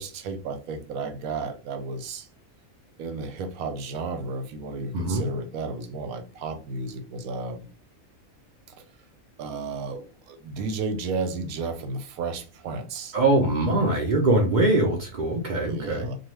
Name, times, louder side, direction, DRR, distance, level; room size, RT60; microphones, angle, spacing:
voice 1, 0.0-2.3 3.0-7.7 8.8-8.9 9.4-13.2 15.6-16.1, right 4 dB, 85° right, 1.0 m, -33 dB
voice 2, 4.9-5.2 13.1-16.1, right 2 dB, 70° right, 0.4 m, -22 dB
2.7 x 2.2 x 3.1 m
omnidirectional pair, 1.4 m